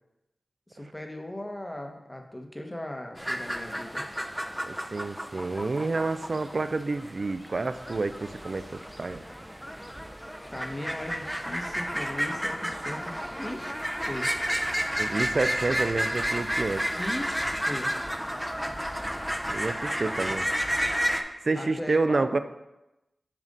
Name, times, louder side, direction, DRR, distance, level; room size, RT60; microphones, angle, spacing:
voice 1, 0.7-4.0 10.4-13.7 14.1-14.3 16.9-17.9 21.5-22.3, left 1 dB, 20° left, 3 dB, 0.9 m, -38 dB
sound 1, 3.2-21.2, equal, 5° right, 0.5 m, -31 dB
voice 2, 4.6-9.2 15.0-16.9 19.5-20.5 21.4-22.4, right 3 dB, 60° right, 11 dB, 0.3 m, -29 dB
sound 2, 11.2-21.2, right 1 dB, 20° right, 0.8 m, -47 dB
7.3 x 2.5 x 5.2 m, 0.97 s
cardioid pair, 50°, 0 cm